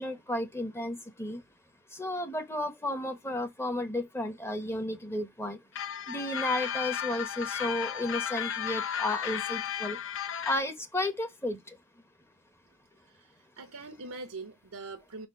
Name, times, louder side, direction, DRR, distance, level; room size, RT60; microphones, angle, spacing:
voice 1, 0.0-1.4 2.0-5.6 6.1-10.0 10.5-11.6, left 1 dB, 10° left, 1.0 m, -33 dB
sound 1, 5.7-10.6, left 9 dB, 60° left, 0.7 m, -34 dB
voice 2, 13.1-15.3, right 3 dB, 80° right, 0.9 m, -43 dB
5.5 x 4.4 x 5.6 m
head